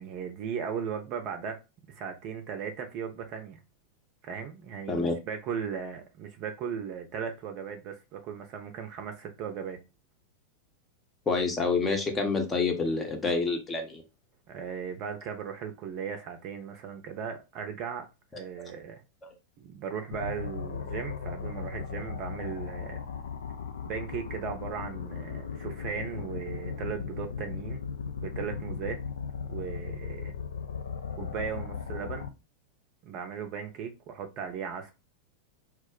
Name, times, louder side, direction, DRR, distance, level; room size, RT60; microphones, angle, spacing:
voice 1, 0.0-1.6 1.9-3.6 4.2-9.8 14.5-18.1 18.4-19.0 19.6-23.0 23.9-27.8 28.2-29.0 29.5-30.4 31.2-32.3 33.0-34.9, right 7 dB, 40° right, 0.5 m, -37 dB
voice 2, 4.9-5.2 11.3-14.0 18.3-18.4, left 4 dB, 20° left, 0.7 m, -28 dB
sound 1, 20.1-32.3, left 6 dB, 65° left, 0.3 m, -37 dB
2.3 x 2.0 x 3.7 m
figure-of-eight pair, 90°, 0 cm